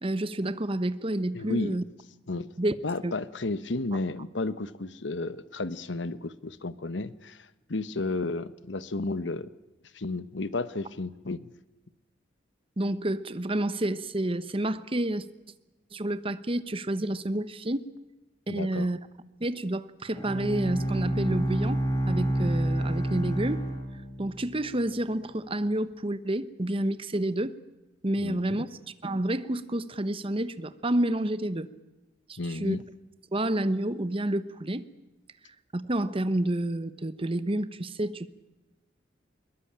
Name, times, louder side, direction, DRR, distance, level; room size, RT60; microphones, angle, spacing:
voice 1, 0.0-1.8 2.6-2.7 3.0-3.1 12.8-15.2 15.9-17.9 18.5-19.0 19.4-23.6 24.2-27.6 28.0-28.7 29.0-31.7 32.3-32.8 33.3-34.9 35.7-38.3, right 1 dB, 30° right, 14 dB, 1.0 m, -29 dB
voice 2, 1.3-1.8 2.3-2.5 2.8-9.5 9.9-11.5 18.5-18.9 28.2-28.6 32.4-32.8, left 2 dB, 75° left, 15 dB, 1.1 m, -33 dB
Bowed string instrument, 20.1-24.5, right 1 dB, 20° left, 5.6 m, -28 dB
22.0 x 21.0 x 8.8 m, 1.0 s
head